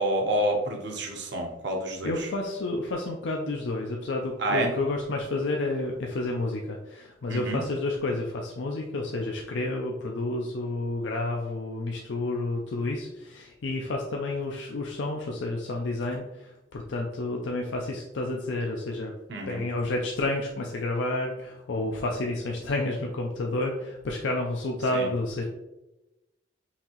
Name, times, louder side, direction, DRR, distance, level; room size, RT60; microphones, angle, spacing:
voice 1, 0.0-2.3 4.4-4.7 7.3-7.6 19.3-19.6 24.9-25.1, right 1 dB, 65° right, 2 dB, 0.8 m, -28 dB
voice 2, 2.0-19.1 19.5-25.4, left 2 dB, 75° left, 0 dB, 0.5 m, -30 dB
5.6 x 2.7 x 2.9 m, 0.99 s
head